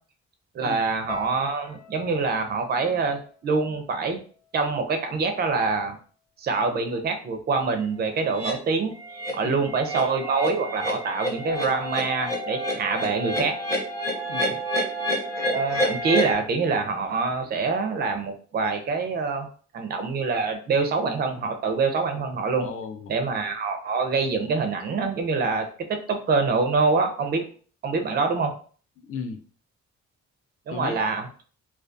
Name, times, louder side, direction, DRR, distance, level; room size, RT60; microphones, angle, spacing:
voice 1, 0.5-4.2 4.5-6.0 6.4-8.9 9.3-13.5 15.5-19.5 19.7-22.7 23.1-27.4 27.8-28.5 30.7-31.3, right 4 dB, 35° right, 6 dB, 0.4 m, -25 dB
sound 1, 1.1-5.3 5.5-6.3 6.9-7.1, left 5 dB, 85° left, 0.7 m, -48 dB
sound 2, 8.3-8.5 9.0-9.3 9.6-16.3, equal, 10° left, 0.7 m, -28 dB
voice 2, 9.4-9.7 14.3-14.6 22.6-23.1 29.0-29.4 30.7-31.0, left 5 dB, 50° left, 6 dB, 0.4 m, -35 dB
2.3 x 2.3 x 2.5 m, 0.43 s
cardioid pair, 140°, 29 cm